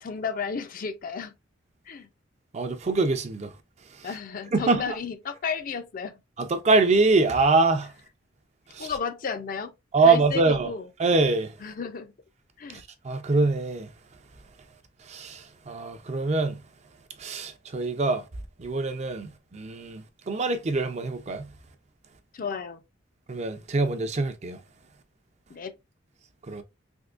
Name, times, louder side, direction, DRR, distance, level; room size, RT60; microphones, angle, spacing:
voice 1, 0.0-1.3 1.9-2.1 4.0-6.1 8.8-9.7 10.1-10.9 11.6-12.1 12.6-12.8 22.3-22.8 25.5-25.7, left 5 dB, 45° left, 0.4 m, -33 dB
voice 2, 2.5-3.5 3.9-4.1 4.5-5.0 6.4-7.9 8.7-8.9 9.9-10.7 11.0-11.5 12.7-13.9 15.0-16.6 17.2-18.3 18.6-21.5 23.3-24.6 26.4-26.6, right 3 dB, 35° right, 0.4 m, -24 dB
3.6 x 2.8 x 2.4 m
head